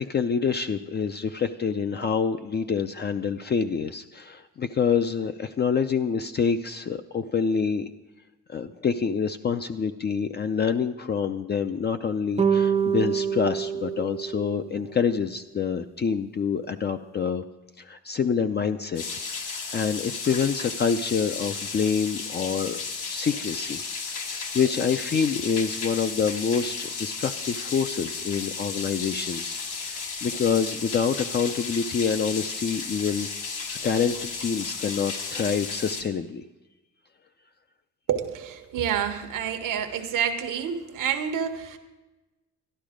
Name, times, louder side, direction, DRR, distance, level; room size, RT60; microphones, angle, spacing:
voice 1, 0.0-7.9 8.5-17.4 17.8-19.0 19.7-24.2 24.5-33.3 33.8-36.4, left 6 dB, 35° left, 7 dB, 0.4 m, -27 dB
sound 1, 12.4-14.9, right 7 dB, 20° right, 0.6 m, -26 dB
sound 2, 19.0-36.0, left 4 dB, 75° left, 1.5 m, -34 dB
voice 2, 38.1-41.8, right 8 dB, 85° right, 7 dB, 1.1 m, -28 dB
12.5 x 11.5 x 5.0 m, 1.1 s
cardioid pair, 120°, 32 cm